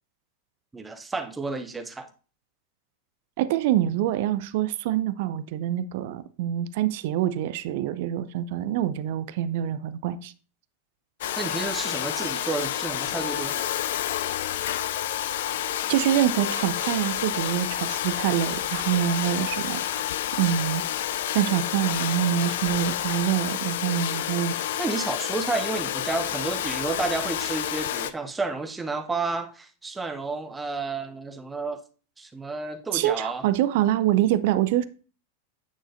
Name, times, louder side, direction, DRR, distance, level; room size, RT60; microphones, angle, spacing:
voice 1, 0.7-2.1 11.4-13.6 24.8-31.8 32.2-33.4, right 3 dB, 10° right, 0.7 m, -31 dB
voice 2, 3.4-10.3 15.9-20.1 20.4-20.8 21.3-24.5 32.9-34.8, right 12 dB, 50° right, 0.5 m, -25 dB
Domestic sounds home sounds, 11.2-28.1, left 11 dB, 55° left, 0.4 m, -29 dB
9.3 x 6.3 x 2.6 m
figure-of-eight pair, 90°, 0 cm